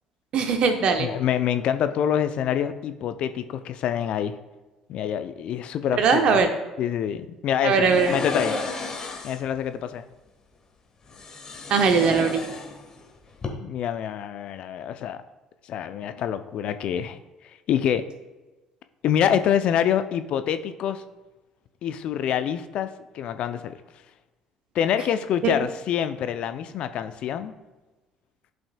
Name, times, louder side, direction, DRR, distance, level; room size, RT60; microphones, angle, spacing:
voice 1, 0.3-1.1 6.0-6.5 7.6-8.2 11.7-12.4 25.4-25.5, right 5 dB, 55° right, 6 dB, 1.0 m, -20 dB
voice 2, 1.0-4.4 4.9-6.4 6.8-8.5 9.2-10.1 13.6-15.2 15.7-17.2 17.4-18.0 19.0-21.0 21.8-23.8 24.7-27.5, left 9 dB, 55° left, 10 dB, 0.5 m, -26 dB
sound 1, 7.8-9.5 11.1-13.0 13.3-13.5, left 4 dB, 35° left, 1.4 m, -32 dB
11.5 x 5.2 x 2.3 m, 1.1 s
hypercardioid pair, 55°, 2 cm